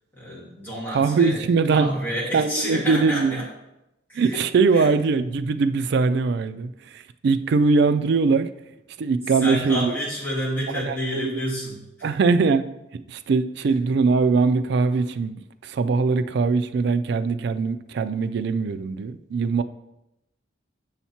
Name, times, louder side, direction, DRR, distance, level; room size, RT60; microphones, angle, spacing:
voice 1, 0.1-1.4 1.7-3.5 4.1-4.4 4.7-4.9 9.3-12.3, equal, 10° left, -8 dB, 2.1 m, -29 dB
voice 2, 0.9-1.9 2.3-3.4 4.1-8.5 9.0-9.9 10.8-11.0 11.2-11.4 12.0-12.7 12.9-19.6, right 4 dB, 60° right, 12 dB, 0.3 m, -21 dB
7.1 x 5.7 x 2.8 m, 0.90 s
head